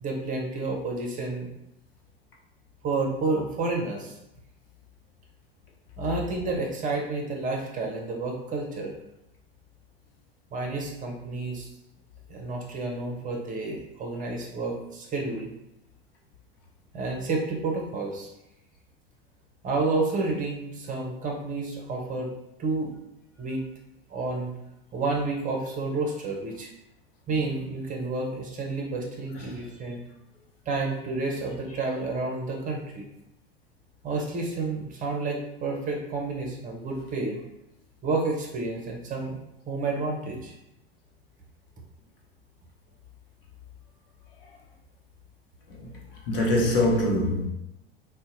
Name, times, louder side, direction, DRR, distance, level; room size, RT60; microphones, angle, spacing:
voice 1, 0.0-1.5 2.8-4.2 6.0-8.9 10.5-11.7 12.3-15.5 16.9-18.3 19.6-22.3 22.6-22.9 23.4-23.6 24.1-24.5 24.9-26.7 27.3-30.0 30.7-33.0 34.0-37.4 38.0-39.4 39.7-40.5, right 3 dB, 25° right, 0.7 m, -30 dB
voice 2, 46.3-47.5, left 1 dB, 65° left, 0.9 m, -23 dB
3.8 x 2.1 x 2.5 m
figure-of-eight pair, 80°, 31 cm